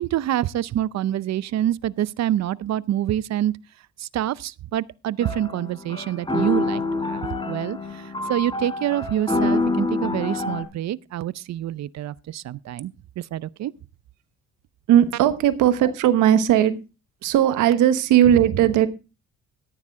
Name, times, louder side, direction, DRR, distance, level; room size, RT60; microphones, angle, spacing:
voice 1, 0.0-3.5 4.0-13.7 18.3-18.6, right 12 dB, 60° right, 0.6 m, -26 dB
sound 1, 5.2-10.6, left 3 dB, 15° left, 3.5 m, -26 dB
voice 2, 14.9-16.8 17.2-18.9, right 11 dB, 90° right, 1.2 m, -17 dB
14.0 x 10.0 x 3.6 m
supercardioid pair, 70°, 30 cm